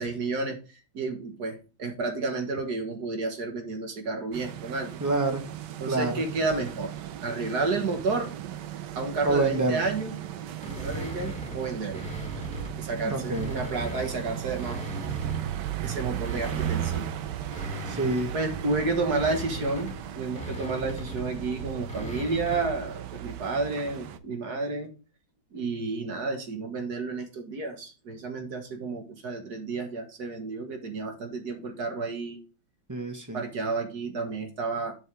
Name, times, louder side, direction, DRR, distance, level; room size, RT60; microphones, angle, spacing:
voice 1, 0.0-5.0 5.8-6.9 7.2-8.3 9.0-10.2 10.7-12.1 12.8-14.8 15.8-17.1 18.3-24.9 25.5-32.4 33.3-35.0, right 3 dB, 50° right, 5 dB, 1.9 m, -31 dB
sound 1, 4.3-24.2, right 11 dB, 65° right, 1.2 m, -36 dB
voice 2, 5.0-5.4 5.9-6.2 9.2-9.8 13.0-13.5 17.9-18.3 32.9-33.4, right 3 dB, 15° right, 4 dB, 0.6 m, -26 dB
sound 2, 10.6-12.8 13.2-15.6 16.1-22.9, left 1 dB, 5° left, 1.4 m, -39 dB
7.4 x 7.2 x 3.4 m, 0.33 s
omnidirectional pair, 2.2 m